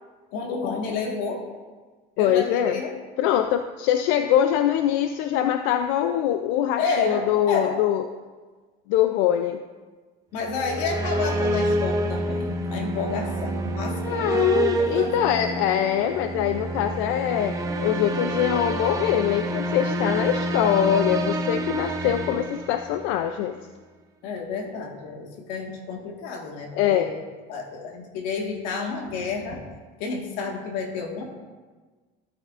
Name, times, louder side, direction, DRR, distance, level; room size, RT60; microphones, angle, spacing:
voice 1, 0.3-1.5 2.2-2.9 6.8-7.8 10.3-14.5 14.8-15.3 24.2-27.2 27.5-29.6 30.0-31.2, left 4 dB, 90° left, 2 dB, 1.7 m, -30 dB
voice 2, 2.2-2.8 3.2-8.0 8.9-9.6 14.1-17.6 17.8-23.6 26.7-27.1, left 11 dB, 70° left, 8 dB, 0.4 m, -23 dB
sound 1, 10.4-23.2, right 1 dB, 15° right, 0.6 m, -28 dB
13.0 x 8.3 x 2.5 m, 1.4 s
cardioid pair, 160°, 21 cm